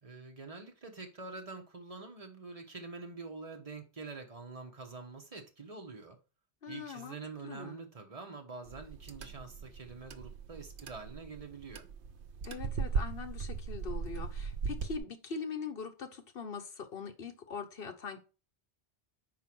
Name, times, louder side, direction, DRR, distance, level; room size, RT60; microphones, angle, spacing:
voice 1, 0.0-6.2 6.7-11.8, right 4 dB, 35° right, 1.3 m, -46 dB
voice 2, 6.6-7.2 7.4-7.8 12.4-18.2, left 5 dB, 60° left, 1.2 m, -42 dB
sound 1, 8.7-15.0, right 5 dB, 80° right, 1.0 m, -38 dB
4.9 x 4.6 x 6.1 m
omnidirectional pair, 1.1 m